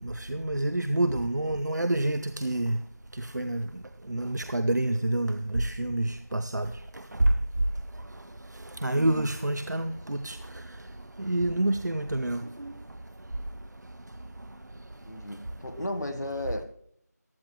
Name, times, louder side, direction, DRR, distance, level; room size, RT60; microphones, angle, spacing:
voice 1, 0.0-2.8 3.1-7.3 8.1-8.2 8.5-10.9 11.2-12.7 15.8-15.9, right 1 dB, 80° right, 10 dB, 0.7 m, -28 dB
voice 2, 15.1-16.6, left 1 dB, 75° left, 5 dB, 1.2 m, -34 dB
15.0 x 11.0 x 3.1 m, 0.68 s
figure-of-eight pair, 175°, 9 cm